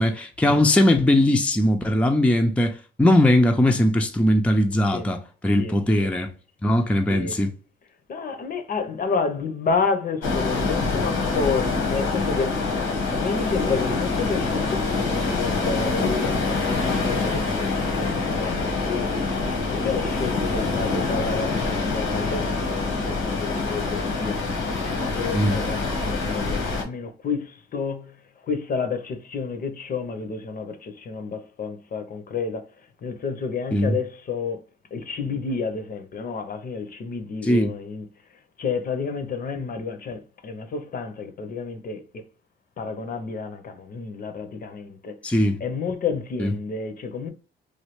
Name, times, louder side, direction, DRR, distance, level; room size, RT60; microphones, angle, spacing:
voice 1, 0.0-6.3 6.6-7.5 25.3-25.6 33.7-34.0 37.4-37.7 45.2-45.6 46.4-46.5, left 1 dB, 5° left, 0.4 m, -20 dB
voice 2, 5.5-6.1 7.1-7.4 8.1-12.6 13.1-24.4 25.0-28.1 28.4-32.7 33.0-34.6 34.9-38.0 38.6-42.2 42.8-45.2 45.6-47.3, left 5 dB, 50° left, 0.6 m, -30 dB
sound 1, 10.2-26.8, left 3 dB, 90° left, 1.2 m, -25 dB
3.2 x 2.2 x 3.0 m
cardioid pair, 90°, 20 cm